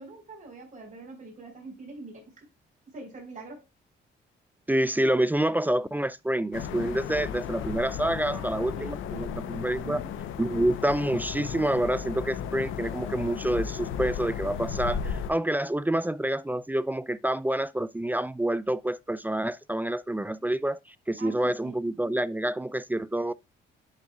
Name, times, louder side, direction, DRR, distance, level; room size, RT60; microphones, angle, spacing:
voice 1, 0.0-2.5 2.9-3.7 8.3-9.4 9.8-10.1 21.2-21.8, right 3 dB, 40° right, 4.7 m, -44 dB
voice 2, 4.7-10.0 10.4-20.8 21.1-23.3, right 1 dB, 10° right, 0.3 m, -27 dB
sound 1, 6.5-15.3, left 8 dB, 90° left, 0.8 m, -35 dB
10.5 x 4.7 x 2.4 m
cardioid pair, 90°, 20 cm